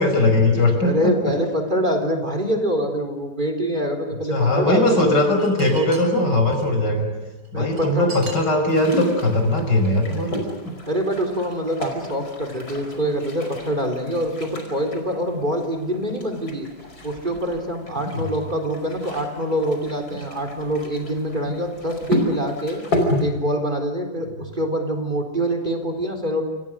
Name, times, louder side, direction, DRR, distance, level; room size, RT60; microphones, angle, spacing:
voice 1, 0.0-1.1 4.3-7.1 7.5-10.4 18.1-18.3, left 2 dB, 90° left, 4 dB, 6.5 m, -19 dB
voice 2, 0.8-5.2 7.0-7.1 7.5-8.2 10.9-16.7 17.0-22.8 23.2-26.4, equal, 25° right, 5 dB, 4.3 m, -25 dB
sound 1, 4.5-6.7 7.4-8.9, right 2 dB, 80° right, 8.1 m, -39 dB
sound 2, 8.7-23.2, left 1 dB, 60° left, 5.8 m, -31 dB
29.0 x 29.0 x 6.5 m, 1.1 s
omnidirectional pair, 1.8 m